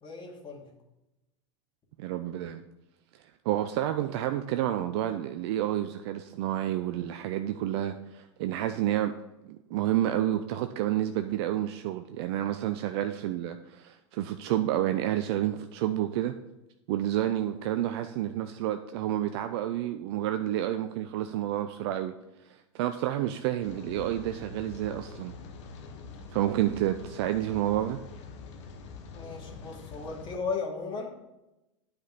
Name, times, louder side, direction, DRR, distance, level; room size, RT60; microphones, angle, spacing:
voice 1, 0.0-0.7 29.1-31.2, left 4 dB, 30° left, 0 dB, 2.4 m, -36 dB
voice 2, 2.0-2.6 3.4-9.1 9.4-16.3 16.9-22.1 22.5-25.3 26.3-28.0, right 12 dB, 60° right, 8 dB, 0.5 m, -29 dB
Rain, 23.6-30.4, left 4 dB, 70° left, 1.3 m, -45 dB
9.5 x 5.1 x 5.9 m, 0.94 s
hypercardioid pair, 90°, 16 cm